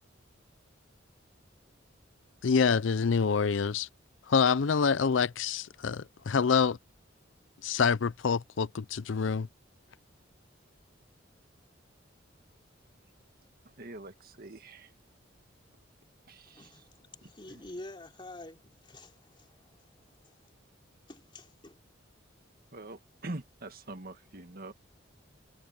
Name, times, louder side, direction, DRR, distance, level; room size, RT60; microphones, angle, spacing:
voice 1, 2.4-3.9 4.3-6.8 7.6-9.5, left 6 dB, 75° left, 0.5 m, -26 dB
voice 2, 13.6-15.0 16.3-16.8 17.2-17.6 22.7-24.7, right 2 dB, 50° right, 1.8 m, -44 dB
voice 3, 16.5-20.5 21.1-21.8, left 2 dB, 25° left, 3.2 m, -49 dB
head